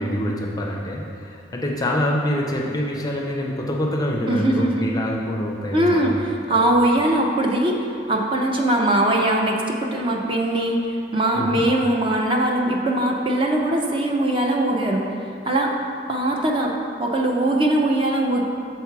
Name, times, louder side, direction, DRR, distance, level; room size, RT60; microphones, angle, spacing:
voice 1, 0.0-6.1 6.5-6.6 11.4-11.6, left 1 dB, 20° left, -1 dB, 0.5 m, -25 dB
voice 2, 4.3-4.9 5.7-7.8 8.1-10.8 11.1-15.0 15.5-15.7 16.1-16.7 17.0-18.4, right 1 dB, 25° right, 0 dB, 0.6 m, -21 dB
6.9 x 4.5 x 4.7 m, 2.6 s
head